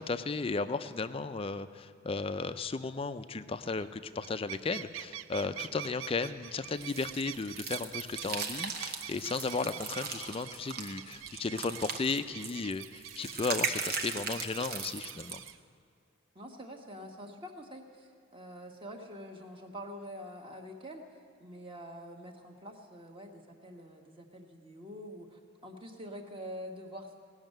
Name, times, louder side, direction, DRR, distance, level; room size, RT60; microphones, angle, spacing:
voice 1, 0.0-15.4, left 4 dB, 25° left, 11 dB, 0.4 m, -35 dB
sound 1, 3.7-3.9 4.2-15.6, right 13 dB, 70° right, 0.3 m, -46 dB
sound 2, 6.8-15.5, right 5 dB, 45° right, 1.0 m, -38 dB
voice 2, 16.3-27.1, equal, 25° right, 2 dB, 1.2 m, -46 dB
18.0 x 6.4 x 9.0 m, 2.3 s
head